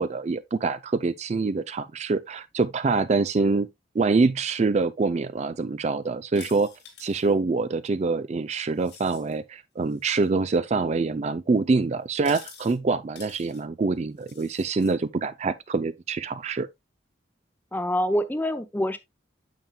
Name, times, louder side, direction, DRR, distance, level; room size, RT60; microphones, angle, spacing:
voice 1, 0.0-3.7 3.9-6.7 7.0-16.7, right 4 dB, 40° right, 0.4 m, -25 dB
sound 1, 6.3-7.3 8.7-9.3 9.9-10.3 12.2-12.7 13.1-13.6 14.2-14.9, left 6 dB, 80° left, 3.0 m, -47 dB
voice 2, 17.7-19.0, equal, 10° left, 0.7 m, -25 dB
9.1 x 7.1 x 2.2 m
head